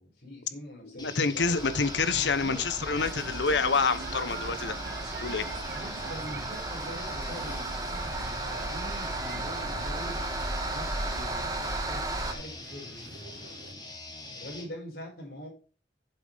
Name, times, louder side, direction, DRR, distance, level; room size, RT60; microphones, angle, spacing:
voice 1, 0.0-1.8 2.1-2.7 3.1-3.4 5.5-10.3 10.6-13.2 14.3-15.5, equal, 60° left, 5.6 m, -44 dB
voice 2, 1.0-4.7 5.2-5.4, left 4 dB, 85° left, 1.0 m, -27 dB
sound 1, 1.0-14.7, left 2 dB, 25° left, 2.7 m, -44 dB
sound 2, 1.4-12.3, right 2 dB, 20° right, 1.5 m, -35 dB
sound 3, 3.0-13.7, right 4 dB, 70° right, 1.1 m, -45 dB
10.5 x 7.9 x 3.5 m
head